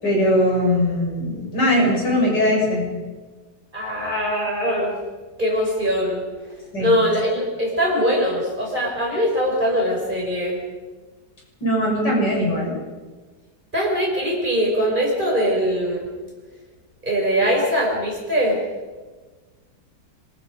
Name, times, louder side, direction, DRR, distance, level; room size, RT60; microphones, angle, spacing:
voice 1, 0.0-2.9 6.7-6.9 11.6-12.8, left 1 dB, 80° left, -2 dB, 7.4 m, -20 dB
voice 2, 3.7-5.0 5.4-6.3 6.8-10.6 13.7-16.1 17.0-18.6, equal, 25° right, -1 dB, 5.9 m, -22 dB
25.5 x 22.0 x 5.3 m, 1.3 s
omnidirectional pair, 1.8 m